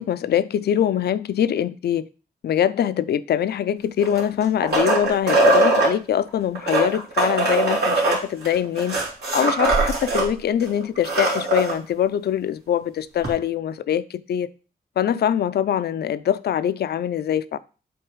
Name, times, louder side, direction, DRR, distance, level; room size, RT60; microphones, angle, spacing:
voice 1, 0.0-2.1 2.4-9.0 9.3-14.5 15.0-17.6, left 9 dB, 85° left, 0.4 m, -23 dB
sound 1, 4.0-5.9 6.5-10.3 10.6-10.7 10.9-11.7 13.2-13.3, right 2 dB, 85° right, 2.6 m, -21 dB
8.0 x 3.9 x 4.6 m
cardioid pair, 90°, 16 cm